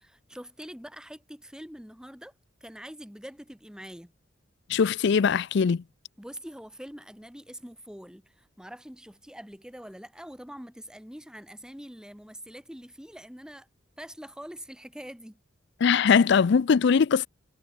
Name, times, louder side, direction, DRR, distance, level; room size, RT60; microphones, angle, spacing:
voice 1, 0.0-2.3 2.6-4.1 6.2-13.7 14.0-15.4, equal, 5° right, 2.6 m, -44 dB
voice 2, 4.7-5.8 15.8-17.3, left 6 dB, 65° left, 0.4 m, -21 dB
head